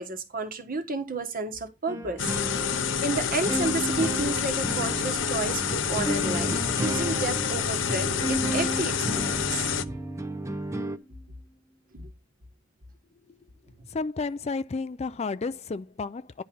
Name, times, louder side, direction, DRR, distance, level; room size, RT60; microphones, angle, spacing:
voice 1, 0.0-2.3 3.0-9.7 11.9-12.1, right 3 dB, 45° right, 1.5 m, -31 dB
sound 1, 1.9-11.0, right 1 dB, 15° right, 0.7 m, -34 dB
sound 2, 2.2-9.8, left 8 dB, 70° left, 0.7 m, -28 dB
sound 3, 3.5-10.6, equal, 15° left, 1.3 m, -36 dB
voice 2, 13.9-16.4, left 4 dB, 35° left, 0.4 m, -32 dB
10.5 x 4.3 x 5.5 m
head